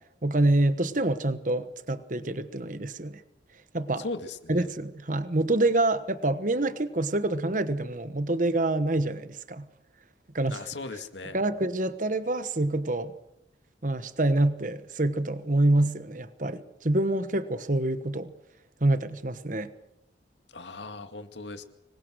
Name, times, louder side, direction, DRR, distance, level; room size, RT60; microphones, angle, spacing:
voice 1, 0.2-3.2 3.7-4.0 4.5-9.7 10.3-10.6 11.3-13.1 13.8-18.3 18.8-19.7, right 2 dB, 45° right, 1.2 m, -26 dB
voice 2, 4.0-4.7 10.5-11.4 20.5-21.7, left 3 dB, 80° left, 2.2 m, -38 dB
26.0 x 22.0 x 6.4 m
head